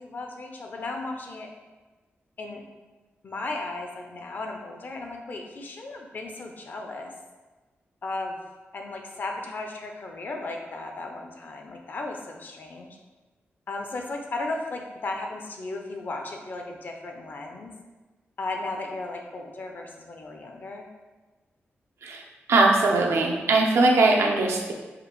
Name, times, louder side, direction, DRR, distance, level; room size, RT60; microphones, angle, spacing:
voice 1, 0.0-1.5 2.4-2.6 3.2-7.1 8.0-8.4 8.7-13.0 13.7-17.7 18.4-20.9, left 2 dB, 50° left, 2 dB, 0.5 m, -35 dB
voice 2, 22.5-24.7, right 3 dB, 90° right, 0 dB, 0.6 m, -20 dB
4.9 x 2.4 x 3.0 m, 1.2 s
wide cardioid pair, 145°, 4 cm